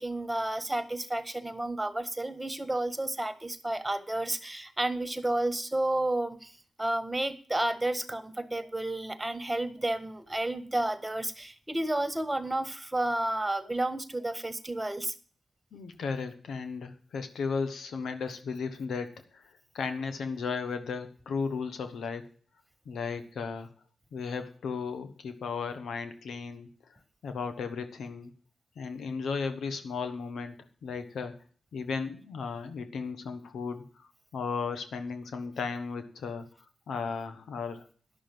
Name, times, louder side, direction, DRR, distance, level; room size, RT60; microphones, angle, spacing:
voice 1, 0.0-15.1, right 1 dB, 15° right, 11 dB, 1.6 m, -31 dB
voice 2, 15.7-22.3 22.8-23.7 24.1-26.7 27.2-28.3 28.8-30.6 30.8-31.4 31.7-36.4 36.9-37.8, left 5 dB, 80° left, 8 dB, 1.2 m, -35 dB
11.0 x 6.4 x 7.7 m, 0.43 s
cardioid pair, 50°, 0 cm